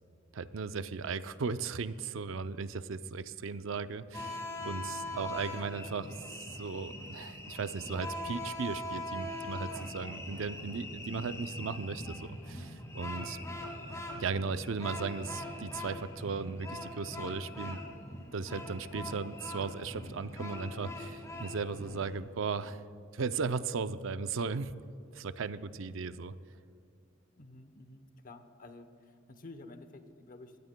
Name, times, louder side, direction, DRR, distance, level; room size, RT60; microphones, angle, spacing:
voice 1, 0.3-6.1 6.6-13.4 14.1-17.8 18.3-22.8 23.1-24.7 25.1-26.3, right 5 dB, 80° right, 12 dB, 0.5 m, -36 dB
sound 1, 4.1-22.2, left 1 dB, 15° left, 2.1 m, -42 dB
voice 2, 27.4-30.6, left 2 dB, 45° left, 9 dB, 0.9 m, -51 dB
22.0 x 18.0 x 2.2 m, 2.5 s
head